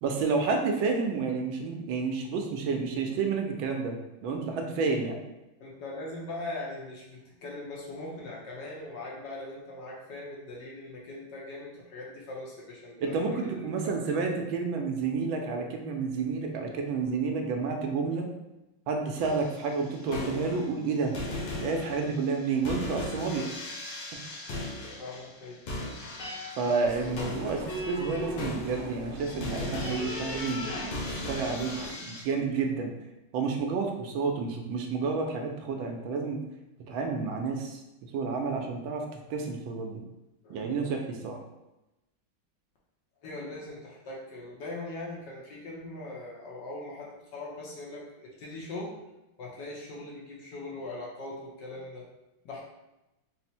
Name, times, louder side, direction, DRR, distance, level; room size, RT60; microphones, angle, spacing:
voice 1, 0.0-4.0 4.2-5.2 13.0-18.3 18.9-21.2 21.6-23.5 26.6-30.7 31.1-32.9 33.3-36.4 36.9-37.8 38.1-39.0 39.3-40.0 40.5-41.4, right 4 dB, 80° right, 2 dB, 1.3 m, -30 dB
voice 2, 5.6-13.7 14.2-14.3 24.8-25.6 40.4-41.0 43.2-49.0 49.4-52.1 52.4-52.6, left 2 dB, 65° left, -4 dB, 1.4 m, -41 dB
sound 1, 19.2-19.6 20.0-20.9 21.1-32.2, left 1 dB, 85° left, 1.7 m, -37 dB
sound 2, 26.8-31.9, right 1 dB, 50° right, 1.0 m, -43 dB
4.2 x 2.1 x 4.2 m, 0.97 s
omnidirectional pair, 2.2 m